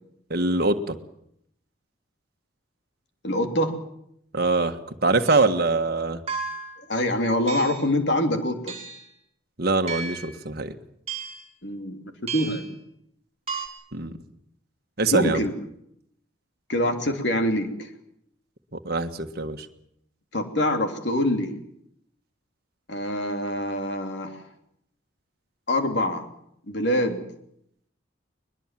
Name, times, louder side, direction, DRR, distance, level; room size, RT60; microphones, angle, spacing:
voice 1, 0.3-0.9 4.3-4.8 5.0-6.2 9.6-10.7 13.9-14.1 15.0-15.4 18.8-19.6, right 3 dB, 50° right, 6 dB, 1.6 m, -23 dB
voice 2, 3.2-3.8 6.9-8.8 11.6-12.6 15.1-15.5 16.7-17.9 20.3-21.5 22.9-24.4 25.7-26.3 26.7-27.2, left 1 dB, 55° left, 5 dB, 3.1 m, -25 dB
sound 1, 5.3-5.5 6.3-6.8 7.5-7.9 8.7-9.1 9.9-10.3 11.1-11.5 12.3-12.7 13.5-13.7, right 5 dB, 30° right, 4.0 m, -34 dB
22.0 x 21.5 x 7.6 m, 0.73 s
head